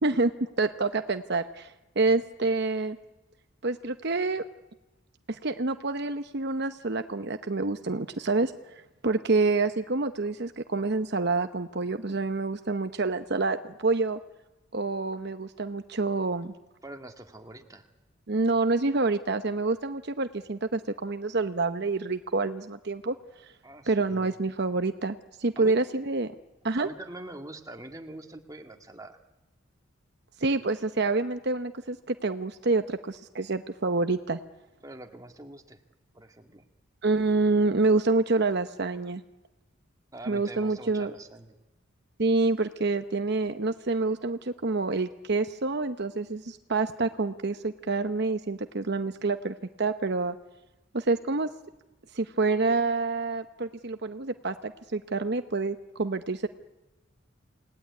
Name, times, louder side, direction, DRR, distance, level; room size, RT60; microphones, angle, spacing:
voice 1, 0.0-3.0 3.6-4.4 5.3-14.2 14.7-16.5 18.3-23.5 23.9-26.3 26.6-26.9 30.4-34.4 37.0-39.2 40.3-41.1 42.2-50.4 50.9-51.5 52.1-56.5, right 3 dB, 55° right, 9 dB, 0.9 m, -27 dB
voice 2, 16.8-17.9 23.6-24.3 25.6-25.8 26.7-29.2 34.8-35.8 36.1-36.6 40.1-41.6, right 1 dB, 15° right, 4 dB, 2.0 m, -44 dB
28.5 x 19.0 x 9.6 m, 1.0 s
head